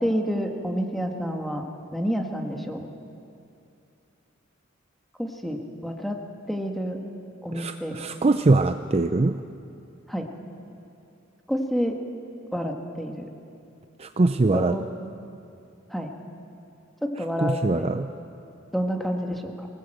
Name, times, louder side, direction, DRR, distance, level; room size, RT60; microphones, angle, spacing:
voice 1, 0.0-1.6 1.9-2.9 5.2-6.2 6.5-7.0 7.4-7.9 10.1-10.3 11.5-12.0 12.5-13.3 14.5-14.9 15.9-16.1 17.0-17.9 18.7-19.7, equal, ahead, 2 dB, 1.8 m, -28 dB
voice 2, 7.5-9.3 14.2-14.7 17.4-18.1, right 3 dB, 30° right, 8 dB, 0.5 m, -22 dB
23.5 x 19.0 x 7.8 m, 2.6 s
head